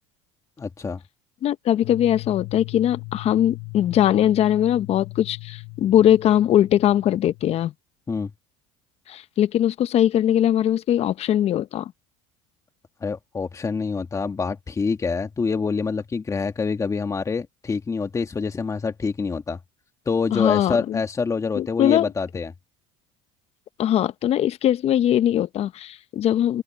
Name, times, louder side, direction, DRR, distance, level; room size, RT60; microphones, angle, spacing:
voice 1, 0.6-1.0 8.1-8.3 13.0-19.6 20.1-22.5, left 4 dB, 25° left, 2.0 m, -26 dB
voice 2, 1.4-7.7 9.1-11.9 20.3-21.0 21.6-22.1 23.8-26.6, left 11 dB, 50° left, 1.1 m, -21 dB
sound 1, 1.8-7.7, left 34 dB, 75° left, 4.3 m, -38 dB
open air
supercardioid pair, 90°, 14 cm